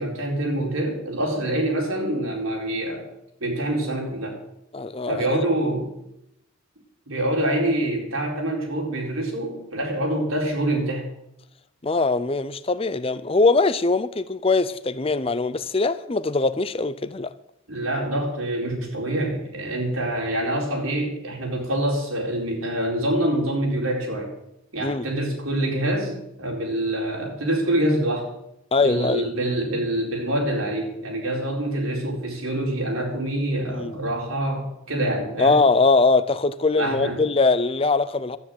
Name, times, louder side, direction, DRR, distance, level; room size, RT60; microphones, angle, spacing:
voice 1, 0.0-3.1 3.4-4.4 5.1-5.9 7.1-11.1 17.7-24.3 24.7-28.3 28.8-35.6 36.8-37.3, right 1 dB, 90° right, 4.4 m, -26 dB
voice 2, 4.7-5.4 11.8-17.3 24.8-25.1 28.7-29.3 33.7-34.0 35.4-38.4, left 3 dB, 25° left, 0.5 m, -21 dB
12.5 x 9.7 x 7.8 m
head